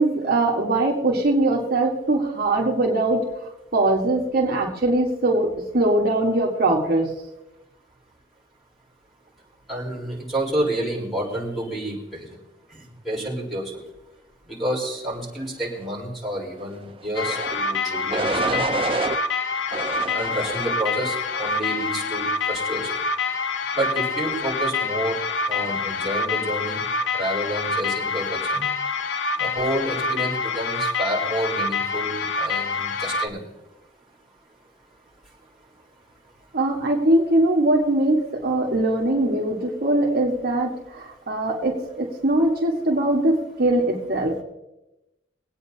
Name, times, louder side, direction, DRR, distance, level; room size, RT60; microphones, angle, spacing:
voice 1, 0.0-3.2 3.7-7.1 36.5-44.4, right 2 dB, 55° right, -1 dB, 1.6 m, -21 dB
voice 2, 9.7-12.3 12.7-13.7 14.5-18.7 20.1-22.9 23.7-25.2 25.5-26.8 27.1-28.7 29.4-33.4, right 1 dB, ahead, -8 dB, 4.0 m, -29 dB
sound 1, 17.2-33.3, left 4 dB, 75° left, 0.6 m, -26 dB
sound 2, 17.2-17.6 18.1-19.2 19.7-20.8 21.3-21.8, right 3 dB, 30° right, 0.5 m, -28 dB
24.0 x 8.8 x 2.8 m, 0.92 s
head